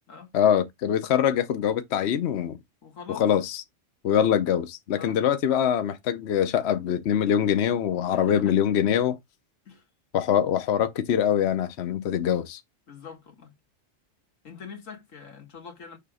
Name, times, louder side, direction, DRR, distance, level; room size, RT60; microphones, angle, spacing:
voice 1, 0.3-2.6 3.1-3.6 4.0-9.2 10.1-12.6, left 9 dB, 65° left, 0.9 m, -23 dB
voice 2, 2.8-3.3 5.0-5.2 8.1-8.6 9.7-9.9 12.9-13.5 14.4-16.0, left 6 dB, 90° left, 2.0 m, -43 dB
6.8 x 2.9 x 4.9 m
omnidirectional pair, 1.3 m